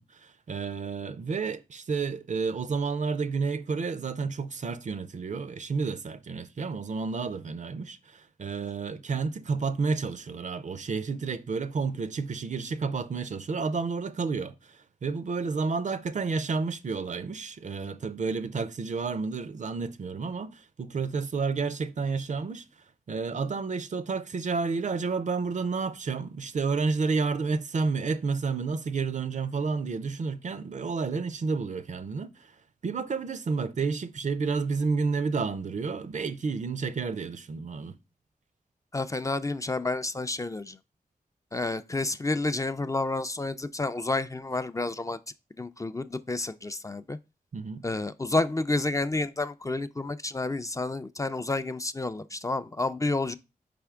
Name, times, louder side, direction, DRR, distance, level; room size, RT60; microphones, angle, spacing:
voice 1, 0.0-22.6 23.1-32.5 32.8-38.0 47.5-47.9, right 4 dB, 55° right, 0.4 m, -30 dB
voice 2, 38.9-40.8 41.5-45.2 45.6-47.2 47.8-53.3, left 2 dB, 20° left, 0.3 m, -30 dB
4.3 x 3.4 x 3.5 m
cardioid pair, 40°, 15 cm